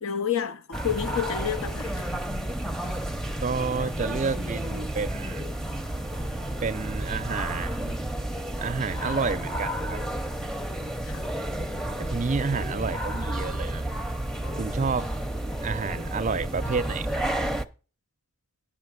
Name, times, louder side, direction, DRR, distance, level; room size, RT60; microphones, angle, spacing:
voice 1, 0.0-2.2 11.1-11.3 12.4-12.6, left 8 dB, 85° left, 0.6 m, -30 dB
sound 1, 0.7-17.6, right 1 dB, ahead, 0.6 m, -31 dB
voice 2, 3.4-5.4 6.6-8.0 8.6-10.0 12.0-13.9 14.6-15.1 15.6-17.2, right 4 dB, 35° right, 0.4 m, -30 dB
10.5 x 5.7 x 6.6 m
head